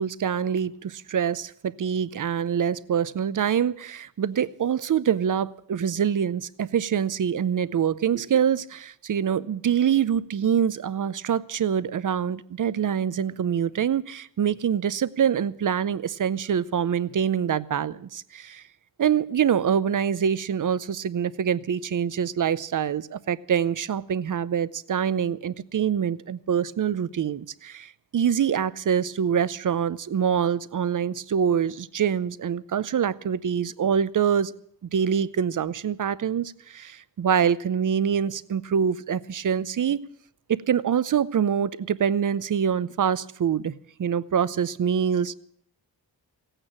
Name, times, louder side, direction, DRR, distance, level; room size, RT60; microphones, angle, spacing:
voice 1, 0.0-18.6 19.0-34.5 34.9-40.0 40.5-43.7 44.0-45.3, right 8 dB, 50° right, 17 dB, 0.6 m, -25 dB
17.0 x 9.0 x 8.8 m, 0.64 s
wide cardioid pair, 135°, 42 cm